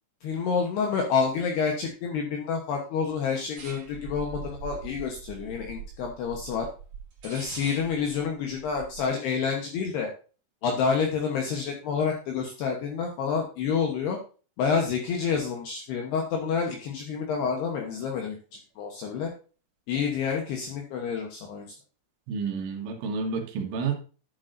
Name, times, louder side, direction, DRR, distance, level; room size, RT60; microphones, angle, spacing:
voice 1, 0.2-6.7 7.2-10.1 10.6-14.2 14.6-19.3 19.9-21.8, left 6 dB, 70° left, 1 dB, 2.7 m, -28 dB
sound 1, 3.6-9.0, right 6 dB, 45° right, 3.3 m, -42 dB
voice 2, 22.3-23.9, right 5 dB, 75° right, 3 dB, 3.8 m, -30 dB
11.0 x 8.3 x 2.6 m, 0.37 s
omnidirectional pair, 5.8 m